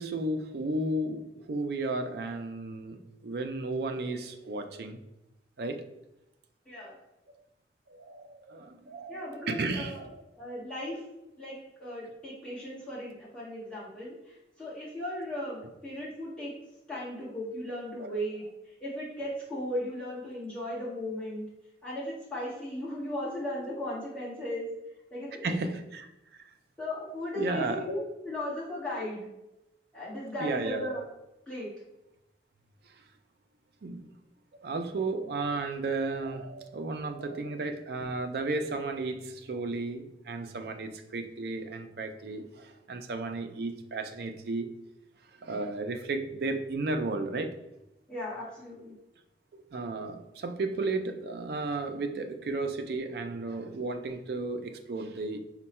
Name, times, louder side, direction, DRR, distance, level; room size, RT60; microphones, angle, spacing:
voice 1, 0.0-5.0 5.6-5.9 7.3-7.4 7.9-10.2 18.0-18.2 25.4-26.4 27.4-27.9 30.4-30.9 33.8-34.1 34.6-44.7 45.4-47.6 49.5-55.4, right 2 dB, 60° right, 6 dB, 0.4 m, -34 dB
voice 2, 9.1-9.9 10.4-11.0 11.4-14.1 14.6-16.5 16.9-18.4 18.8-21.5 21.8-24.7 25.1-25.5 26.8-29.3 29.9-31.0 31.5-31.7 48.1-48.9, left 1 dB, 5° left, -10 dB, 1.4 m, -36 dB
4.5 x 2.2 x 4.1 m, 0.93 s
head